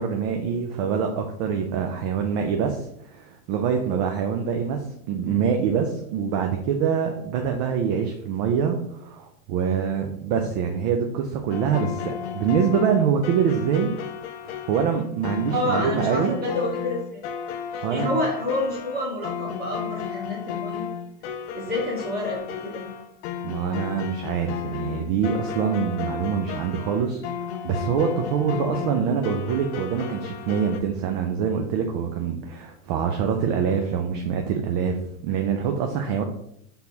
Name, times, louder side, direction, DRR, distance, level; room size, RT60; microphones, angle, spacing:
voice 1, 0.0-13.9 14.4-16.3 17.8-18.2 23.4-35.0 35.2-36.2, right 7 dB, 35° right, 4 dB, 0.4 m, -25 dB
sound 1, 11.5-30.8, left 8 dB, 50° left, 0.5 m, -34 dB
voice 2, 15.5-17.2 17.7-20.9 21.5-22.9, left 1 dB, 20° right, -3 dB, 1.6 m, -28 dB
4.1 x 3.5 x 2.8 m, 0.73 s
hypercardioid pair, 120°, 45 cm